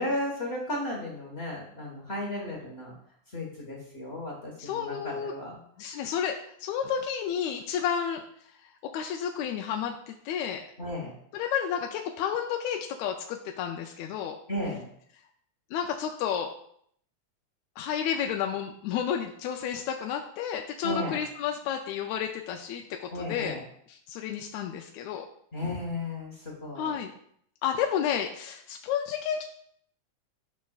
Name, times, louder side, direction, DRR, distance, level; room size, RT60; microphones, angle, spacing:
voice 1, 0.0-2.9 3.3-5.6 10.8-11.1 14.5-14.9 20.8-21.2 23.1-23.6 25.5-27.0, left 1 dB, 50° left, -2 dB, 0.7 m, -34 dB
voice 2, 4.6-5.3 5.8-8.2 8.9-10.6 11.3-14.4 15.7-16.5 17.8-23.5 24.1-25.2 26.8-27.1 27.6-29.4, left 8 dB, 80° left, 3 dB, 1.8 m, -31 dB
10.5 x 6.0 x 2.4 m, 0.67 s
omnidirectional pair, 3.4 m